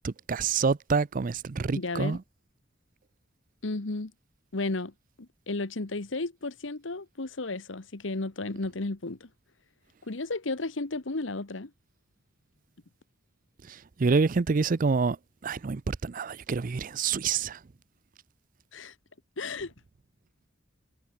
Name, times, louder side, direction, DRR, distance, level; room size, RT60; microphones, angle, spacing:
voice 1, 0.0-2.2 13.6-15.2 15.4-17.6, right 4 dB, 45° right, 0.5 m, -27 dB
voice 2, 1.7-2.2 3.6-4.1 4.5-4.9 5.2-9.3 10.1-11.7 18.7-18.9 19.4-19.7, left 2 dB, 75° left, 1.3 m, -33 dB
head